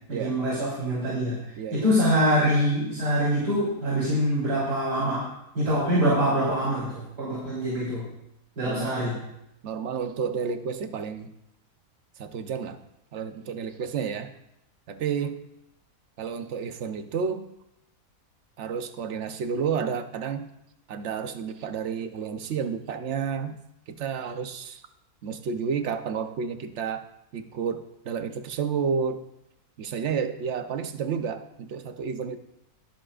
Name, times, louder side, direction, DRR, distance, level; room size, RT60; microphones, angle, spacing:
voice 1, 0.1-5.3 5.5-8.1 8.6-9.2, equal, 90° right, -8 dB, 3.9 m, -25 dB
voice 2, 1.6-1.9 8.7-9.0 9.6-11.3 12.2-12.8 13.1-14.3 14.9-15.5 16.2-17.5 18.6-20.5 20.9-23.6 23.9-24.8 25.2-27.0 27.3-29.2 29.8-32.4, right 6 dB, 55° right, 9 dB, 0.9 m, -31 dB
22.0 x 7.4 x 2.5 m, 0.83 s
omnidirectional pair, 1.6 m